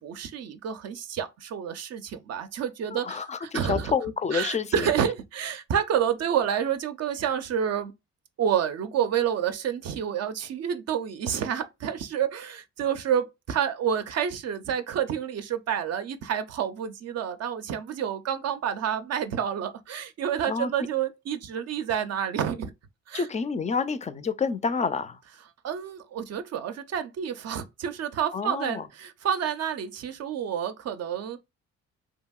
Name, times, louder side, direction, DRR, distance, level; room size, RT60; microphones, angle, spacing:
voice 1, 0.0-3.9 4.3-7.9 8.4-22.7 23.1-23.3 25.6-31.4, right 8 dB, 55° right, 0.5 m, -29 dB
voice 2, 2.9-4.9 20.5-20.7 23.1-25.2 28.3-28.9, left 5 dB, 25° left, 0.4 m, -28 dB
2.8 x 2.6 x 2.2 m
cardioid pair, 90°, 30 cm